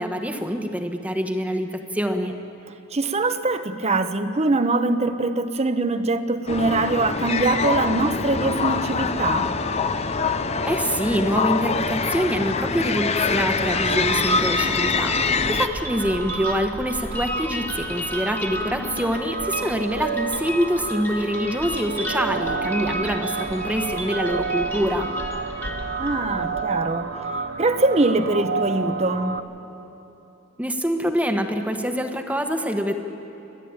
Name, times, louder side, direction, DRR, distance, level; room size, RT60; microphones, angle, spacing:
voice 1, 0.0-2.4 10.6-25.1 30.6-33.0, equal, 5° right, 5 dB, 1.2 m, -25 dB
voice 2, 2.9-9.5 26.0-27.1 27.6-29.4, right 2 dB, 30° right, 10 dB, 0.9 m, -23 dB
sound 1, 6.5-15.7, left 5 dB, 30° left, 0.6 m, -24 dB
sound 2, 13.6-29.4, right 4 dB, 70° right, 1.0 m, -30 dB
sound 3, 15.4-26.7, equal, 10° left, 1.8 m, -34 dB
29.5 x 12.0 x 8.9 m, 3.0 s
head